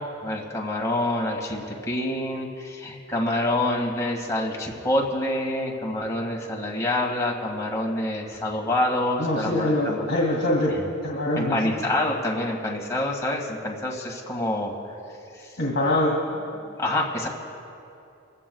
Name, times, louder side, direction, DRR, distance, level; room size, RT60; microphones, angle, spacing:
voice 1, 0.0-10.1 10.8-10.9 11.4-14.7 16.8-17.3, left 1 dB, 15° left, -2 dB, 2.0 m, -27 dB
voice 2, 9.2-10.7 11.0-11.6 15.6-16.2, left 1 dB, 65° left, -4 dB, 2.5 m, -23 dB
25.0 x 16.0 x 2.3 m, 2.7 s
head